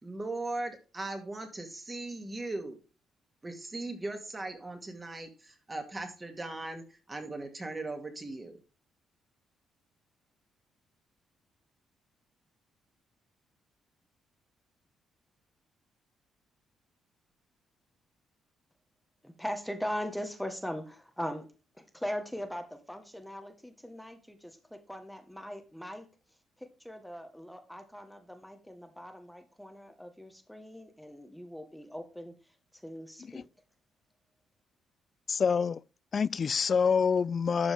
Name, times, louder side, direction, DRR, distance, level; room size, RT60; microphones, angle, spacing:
voice 1, 0.0-2.8 3.4-8.6, right 2 dB, 20° right, 2.4 m, -38 dB
voice 2, 19.2-21.4 21.7-26.1 26.6-33.5, equal, ahead, 1.4 m, -40 dB
voice 3, 35.3-35.8 36.1-37.7, left 6 dB, 45° left, 0.3 m, -26 dB
12.0 x 5.3 x 3.5 m
cardioid pair, 90°, 0 cm